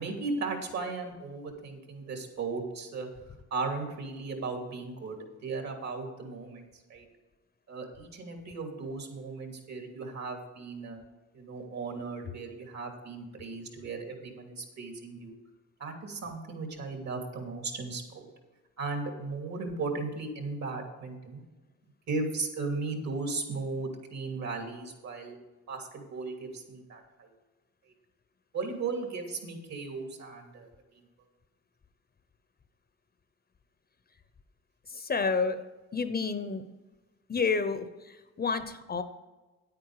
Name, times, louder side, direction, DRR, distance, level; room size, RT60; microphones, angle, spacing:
voice 1, 0.0-3.1 3.5-7.1 7.7-11.0 11.3-15.3 15.8-18.2 18.8-21.4 22.1-25.4 25.7-27.3 28.5-30.7, right 3 dB, 60° right, 3 dB, 2.8 m, -36 dB
voice 2, 34.9-35.6 35.9-36.6 37.3-39.0, left 4 dB, 30° left, 10 dB, 0.8 m, -30 dB
9.7 x 9.0 x 4.8 m, 1.2 s
cardioid pair, 90°, 30 cm